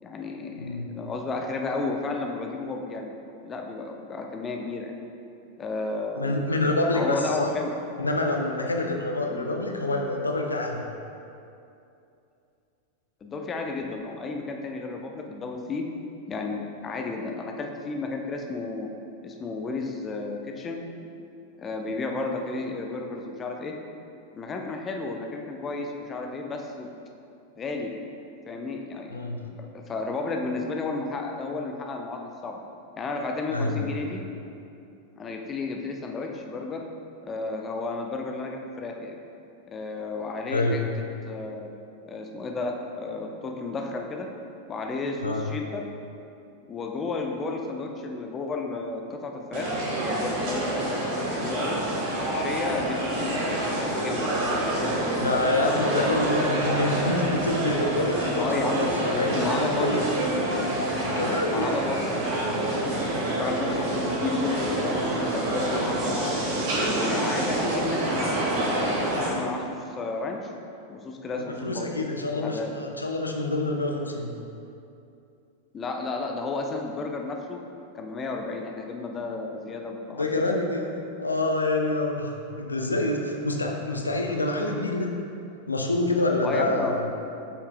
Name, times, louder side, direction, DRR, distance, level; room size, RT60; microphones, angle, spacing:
voice 1, 0.0-3.1 3.4-4.9 5.6-6.4 6.9-7.7 9.3-9.6 13.2-15.9 16.3-18.9 19.2-20.8 21.6-23.7 24.3-26.9 27.6-27.9 28.5-29.1 29.6-32.6 33.0-34.2 35.2-36.9 37.2-39.2 39.7-40.8 41.2-41.7 42.0-44.3 44.7-45.8 46.7-51.0 51.3-51.8 52.2-55.4 56.0-56.2 58.3-58.8 59.1-60.0 61.2-62.2 62.5-66.2 66.9-68.7 69.2-70.5 70.9-72.0 72.4-72.7 75.7-77.6 77.9-80.6 86.4-87.0, left 3 dB, 25° left, 2 dB, 0.6 m, -32 dB
voice 2, 0.6-0.9 6.2-7.5 8.0-10.9 20.8-20.9 29.1-29.5 33.5-33.9 40.5-40.8 45.2-45.5 55.2-60.3 61.2-61.8 71.6-74.3 80.1-85.1 85.7-87.0, left 2 dB, 80° left, 2 dB, 0.5 m, -27 dB
sound 1, 49.5-69.3, right 1 dB, 50° right, 1.4 m, -27 dB
8.3 x 5.7 x 2.2 m, 2.6 s
figure-of-eight pair, 90°, 0 cm